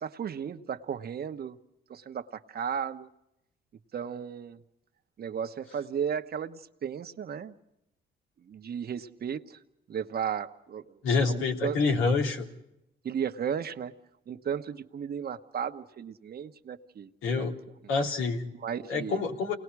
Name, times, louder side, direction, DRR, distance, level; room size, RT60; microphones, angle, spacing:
voice 1, 0.0-1.6 1.9-3.1 3.9-4.6 5.2-7.5 8.4-9.6 9.9-11.0 11.2-12.0 13.0-14.0 14.3-17.1 17.4-17.5 18.5-19.2, right 7 dB, 50° right, 8 dB, 1.2 m, -35 dB
voice 2, 11.0-12.5 17.2-17.5 17.9-18.4 18.9-19.5, left 4 dB, 90° left, 1 dB, 3.3 m, -27 dB
28.5 x 20.0 x 4.8 m, 0.84 s
cardioid pair, 90°, 20 cm